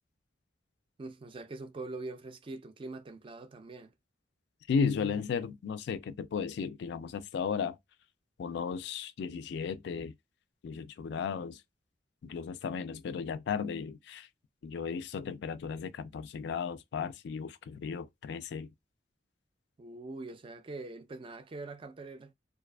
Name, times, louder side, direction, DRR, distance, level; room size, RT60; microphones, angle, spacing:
voice 1, 1.0-3.9 19.8-22.3, right 2 dB, 30° right, 0.3 m, -43 dB
voice 2, 4.7-7.8 8.4-10.1 10.6-11.6 12.2-14.3 14.6-18.7, left 6 dB, 65° left, 0.3 m, -35 dB
2.4 x 2.4 x 2.2 m
head